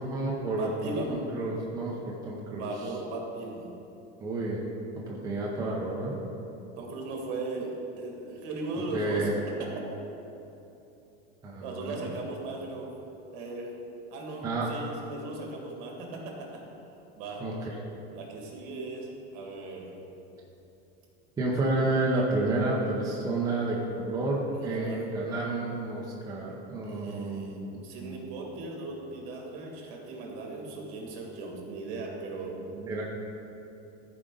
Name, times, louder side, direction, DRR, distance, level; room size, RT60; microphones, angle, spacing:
voice 1, 0.0-2.7 4.2-4.6 4.9-6.2 8.9-9.4 11.4-12.0 14.4-14.7 17.4-17.8 21.4-28.4 32.7-33.0, right 2 dB, 10° right, -4 dB, 0.7 m, -30 dB
voice 2, 0.6-1.2 2.6-3.7 6.8-9.3 9.6-9.9 11.6-12.9 13.3-13.7 14.1-16.6 17.1-17.4 18.1-19.1 19.3-19.9 24.5-25.0 26.8-32.6, right 2 dB, 50° right, -1 dB, 2.0 m, -37 dB
14.0 x 4.9 x 3.8 m, 2.9 s
supercardioid pair, 160°, 31 cm